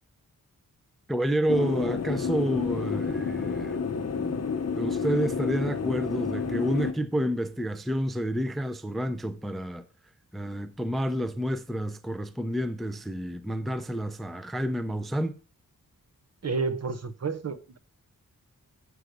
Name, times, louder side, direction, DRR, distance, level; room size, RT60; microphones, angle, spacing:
voice 1, 1.1-3.8 4.2-4.3 4.8-9.8 10.3-15.4, equal, ahead, 0.5 m, -29 dB
sound 1, 1.5-6.9, left 5 dB, 45° left, 0.8 m, -30 dB
voice 2, 16.4-17.8, right 4 dB, 45° right, 0.7 m, -30 dB
7.9 x 4.7 x 6.4 m
wide cardioid pair, 135°, 35 cm